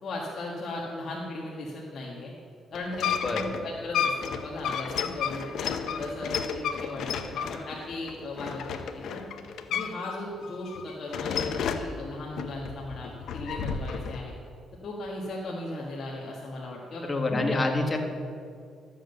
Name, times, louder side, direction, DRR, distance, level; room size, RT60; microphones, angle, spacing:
voice 1, 0.0-2.3 2.7-9.3 9.7-14.3 14.8-17.0 17.3-17.6, left 2 dB, 50° left, -4 dB, 1.8 m, -37 dB
sound 1, 2.7-10.2 10.4-11.9 12.4-14.2, left 7 dB, 75° left, 0.8 m, -32 dB
voice 2, 17.1-18.0, left 2 dB, 25° left, 3 dB, 1.8 m, -26 dB
13.0 x 7.7 x 6.7 m, 2.2 s
cardioid pair, 90°, 0 cm